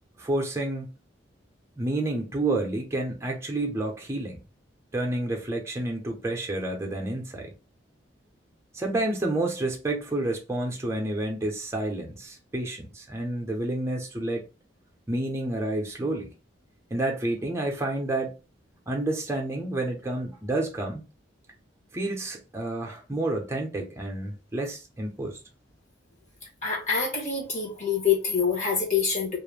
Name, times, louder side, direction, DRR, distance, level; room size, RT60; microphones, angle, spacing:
voice 1, 0.2-0.9 1.8-4.4 4.9-7.5 8.7-14.4 15.1-16.3 16.9-18.4 18.9-21.1 21.9-25.4, right 2 dB, 15° right, 0.6 m, -29 dB
voice 2, 26.6-29.4, left 6 dB, 40° left, 0.9 m, -26 dB
2.4 x 2.0 x 3.1 m
head